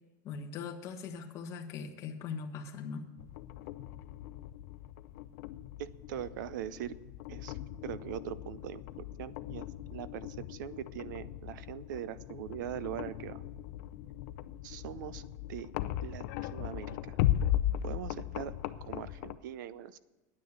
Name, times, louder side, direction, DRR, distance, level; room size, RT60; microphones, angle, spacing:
voice 1, 0.2-3.1, left 5 dB, 30° left, 2 dB, 1.3 m, -40 dB
sound 1, 3.2-19.4, left 12 dB, 55° left, 0.6 m, -37 dB
voice 2, 5.8-7.0 7.3-7.6 7.8-13.4 14.6-15.2 15.5-15.7 16.0-16.3 16.5-17.2 17.8-18.6 18.9-20.0, right 11 dB, 85° right, 17 dB, 0.6 m, -41 dB
9.8 x 9.5 x 6.7 m, 1.2 s
supercardioid pair, 170°, 10 cm